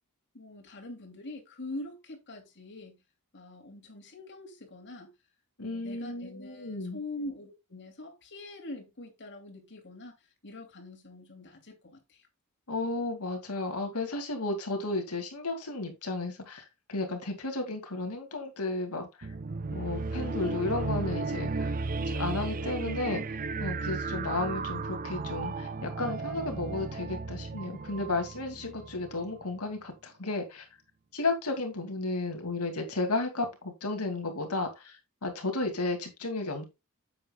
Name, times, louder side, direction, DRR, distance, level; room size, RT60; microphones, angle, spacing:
voice 1, 0.3-3.0 3.3-5.1 5.6-10.2 10.4-12.3, left 2 dB, 55° left, 2.7 m, -44 dB
voice 2, 5.6-7.0 12.7-19.1 19.7-21.7 22.1-23.2 23.6-30.6 31.1-36.6, left 2 dB, 80° left, 2.4 m, -33 dB
sound 1, 19.2-29.4, right 3 dB, 40° right, 0.5 m, -34 dB
9.3 x 7.7 x 2.3 m
head